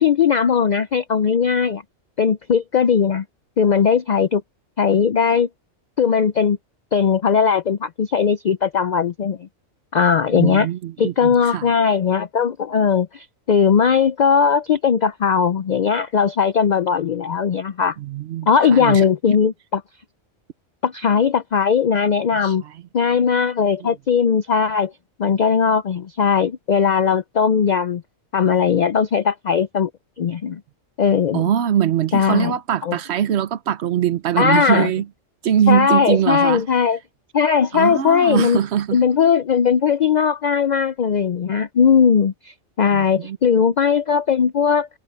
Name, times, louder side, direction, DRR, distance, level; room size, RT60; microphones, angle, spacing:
voice 1, 0.0-1.8 2.2-3.2 3.6-4.4 4.8-5.5 6.0-6.6 6.9-9.5 9.9-10.7 11.0-18.0 18.5-19.8 20.8-22.6 22.9-24.9 25.2-28.0 28.3-29.9 30.2-30.6 31.0-31.4 32.1-32.5 32.8-32.9 34.4-34.9 35.7-37.0 37.3-38.6 38.9-44.9, left 6 dB, 70° left, 0.4 m, -18 dB
voice 2, 10.3-11.7 18.0-19.0 22.3-22.8 23.8-23.9 31.3-35.1 35.4-36.6 37.7-39.0 42.9-43.4, right 10 dB, 60° right, 0.9 m, -22 dB
omnidirectional pair, 1.4 m